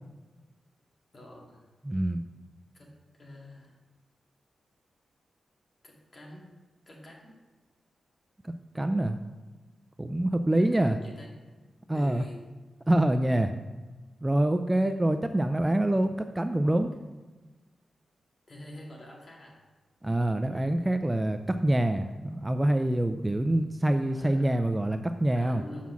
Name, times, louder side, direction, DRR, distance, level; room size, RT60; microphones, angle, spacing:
voice 1, 1.1-1.7 2.7-2.9 3.2-3.8 5.8-6.5 6.9-7.3 10.5-11.4 11.9-12.4 16.6-16.7 18.5-19.7 23.5-23.6 24.1-24.5 25.3-25.9, left 1 dB, 35° left, -1 dB, 2.1 m, -47 dB
voice 2, 1.8-2.3 8.4-9.2 10.0-11.0 11.9-12.2 12.9-13.5 14.2-16.9 20.0-25.6, right 1 dB, 15° right, 7 dB, 0.4 m, -26 dB
7.2 x 5.7 x 6.1 m, 1.3 s
wide cardioid pair, 115°, 0 cm